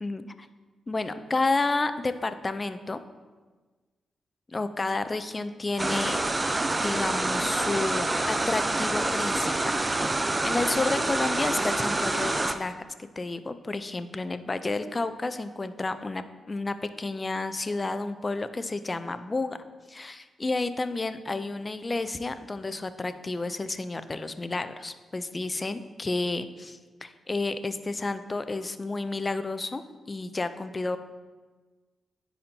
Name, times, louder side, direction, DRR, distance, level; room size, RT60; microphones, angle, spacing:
voice 1, 0.0-0.5 0.9-3.0 4.5-6.2 6.8-9.9 10.4-19.6 19.9-31.0, left 3 dB, 35° left, 11 dB, 0.5 m, -31 dB
sound 1, 5.8-12.5, right 2 dB, 25° right, 0.5 m, -27 dB
10.0 x 4.3 x 2.8 m, 1.3 s
supercardioid pair, 45°, 0 cm